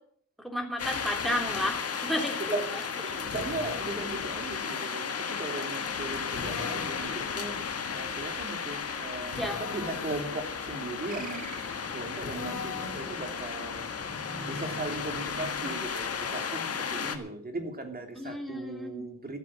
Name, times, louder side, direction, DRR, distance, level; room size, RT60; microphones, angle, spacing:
voice 1, 0.4-2.6 9.4-9.6 18.1-19.1, equal, ahead, 2 dB, 3.3 m, -32 dB
sound 1, 0.8-17.2, left 6 dB, 50° left, 1.6 m, -34 dB
voice 2, 2.5-7.6 7.9-19.4, right 2 dB, 30° right, 5 dB, 3.1 m, -38 dB
Drill, 3.3-4.1 6.3-7.2 9.3-10.1 12.2-13.1, left 5 dB, 65° left, 3.5 m, -40 dB
sound 2, 11.1-12.3, right 7 dB, 60° right, 1.7 m, -45 dB
14.0 x 7.5 x 8.7 m, 0.66 s
cardioid pair, 80°, 32 cm